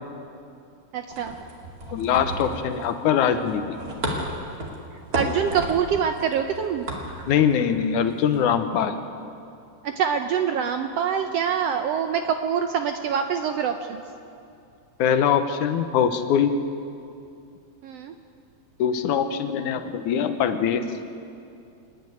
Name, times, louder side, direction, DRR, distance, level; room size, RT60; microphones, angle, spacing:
voice 1, 0.9-1.4 5.1-6.9 9.8-14.0 17.8-18.1, right 7 dB, 75° right, 6 dB, 1.5 m, -25 dB
sound 1, 1.1-8.4, right 1 dB, 30° right, 2.6 m, -34 dB
voice 2, 1.9-3.8 7.3-9.0 15.0-16.5 18.8-20.8, left 8 dB, 75° left, 9 dB, 2.4 m, -22 dB
26.5 x 10.5 x 9.4 m, 2.5 s
omnidirectional pair, 3.5 m